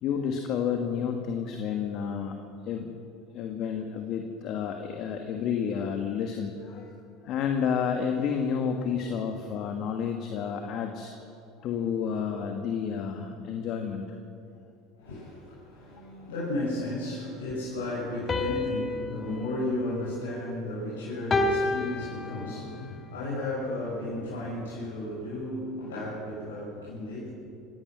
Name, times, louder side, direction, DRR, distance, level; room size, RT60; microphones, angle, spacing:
voice 1, 0.0-2.4 2.6-2.9 3.3-11.1 11.6-14.2, left 7 dB, 55° left, 3 dB, 2.0 m, -30 dB
voice 2, 14.9-27.3, left 1 dB, 80° left, -8 dB, 7.0 m, -34 dB
sound 1, 18.3-20.7 21.3-22.8, left 3 dB, 25° left, 2.0 m, -31 dB
28.0 x 17.0 x 6.3 m, 2.5 s
hypercardioid pair, 75°, 0 cm